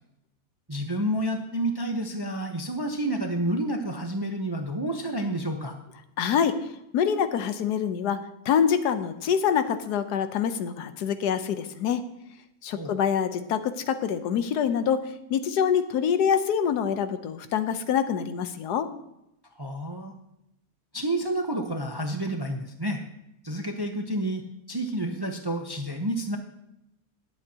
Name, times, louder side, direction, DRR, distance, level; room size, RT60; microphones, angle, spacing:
voice 1, 0.7-5.7 12.7-12.9 19.6-20.1 20.9-23.0 23.4-24.4 24.7-26.4, right 1 dB, 25° right, 4 dB, 0.5 m, -29 dB
voice 2, 6.2-6.6 6.9-8.2 8.5-12.0 12.6-15.0 15.3-18.9, left 8 dB, 85° left, 10 dB, 1.3 m, -25 dB
19.5 x 8.0 x 2.8 m, 0.84 s
omnidirectional pair, 1.7 m